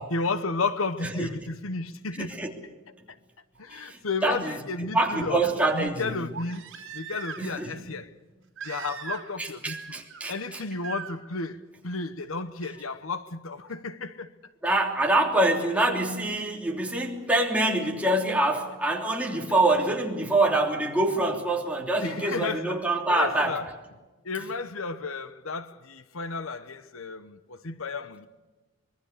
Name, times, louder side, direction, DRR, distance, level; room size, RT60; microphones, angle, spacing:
voice 1, 0.1-2.4 3.6-5.4 5.7-6.7 6.9-8.1 8.6-10.0 10.3-14.3 22.0-23.7 24.2-28.3, left 3 dB, 75° left, 1.1 m, -33 dB
voice 2, 2.2-2.5 3.7-4.6 4.9-6.1 7.4-7.7 9.4-10.6 14.6-23.6, right 2 dB, 5° right, 3.2 m, -25 dB
Crying sobbing, 3.6-3.7 6.3-7.6 8.6-9.4 9.7-10.2 10.8-11.1 12.8-12.9, right 7 dB, 65° right, 3.1 m, -39 dB
25.0 x 22.5 x 6.7 m
head